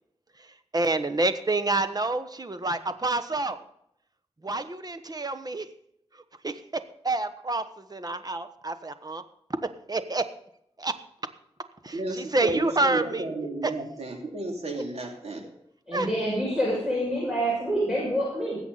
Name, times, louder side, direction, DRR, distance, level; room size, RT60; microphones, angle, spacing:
voice 1, 0.7-3.6 4.4-5.7 6.4-7.6 7.9-9.2 9.9-10.2 10.8-10.9 11.8-13.3 15.9-16.1, right 2 dB, 35° right, 10 dB, 1.1 m, -28 dB
voice 2, 11.9-15.5, right 2 dB, 70° right, 2 dB, 2.9 m, -33 dB
voice 3, 15.9-18.6, equal, 5° right, -6 dB, 6.4 m, -27 dB
20.0 x 8.2 x 4.1 m, 0.74 s
wide cardioid pair, 65°, 11 cm